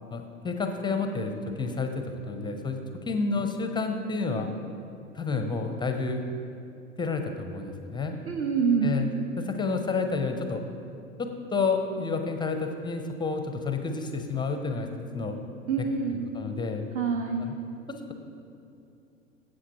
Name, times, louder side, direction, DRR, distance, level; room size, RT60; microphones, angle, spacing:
voice 1, 0.1-2.8 3.0-4.5 5.1-6.2 7.0-8.2 8.8-9.1 9.5-10.6 11.2-14.9 15.1-15.4 15.8-15.9 16.3-16.8 17.4-17.5 17.9-18.1, left 4 dB, 10° left, 5 dB, 0.6 m, -30 dB
voice 2, 8.3-9.1 15.7-16.3 16.9-17.5, right 5 dB, 30° right, 3 dB, 0.8 m, -26 dB
14.0 x 7.6 x 3.0 m, 2.6 s
figure-of-eight pair, 90°, 40 cm